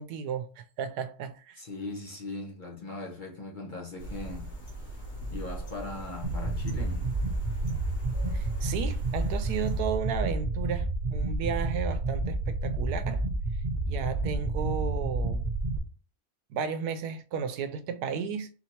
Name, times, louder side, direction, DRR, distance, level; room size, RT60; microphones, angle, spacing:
voice 1, 0.0-1.6 8.3-13.2 13.8-15.4 16.5-18.5, right 7 dB, 90° right, 1.1 m, -34 dB
voice 2, 1.6-4.5 5.3-7.1, left 3 dB, 40° left, 0.8 m, -39 dB
sound 1, 4.0-9.8, right 1 dB, 70° left, 1.9 m, -40 dB
sound 2, 6.2-15.8, right 2 dB, 40° right, 0.7 m, -30 dB
4.3 x 2.8 x 4.3 m
omnidirectional pair, 1.6 m